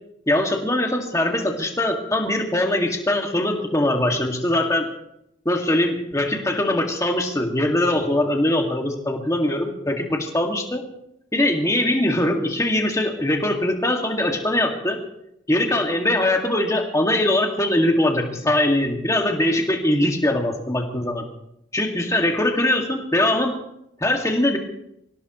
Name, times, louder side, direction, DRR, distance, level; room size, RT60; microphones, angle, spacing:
voice 1, 0.3-4.9 5.5-10.8 11.3-15.0 15.5-21.2 21.7-23.5 24.0-24.6, left 1 dB, 15° left, 2 dB, 2.1 m, -21 dB
25.0 x 17.0 x 3.1 m, 0.80 s
head